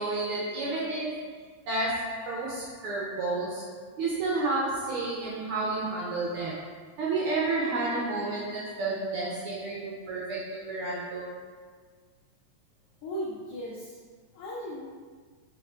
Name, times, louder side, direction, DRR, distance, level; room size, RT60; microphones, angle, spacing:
voice 1, 0.0-1.4 1.7-11.4, right 2 dB, 85° right, -5 dB, 1.2 m, -31 dB
voice 2, 13.0-14.0 14.3-14.8, equal, 85° left, -4 dB, 1.3 m, -36 dB
4.6 x 3.5 x 3.2 m, 1.5 s
omnidirectional pair, 3.3 m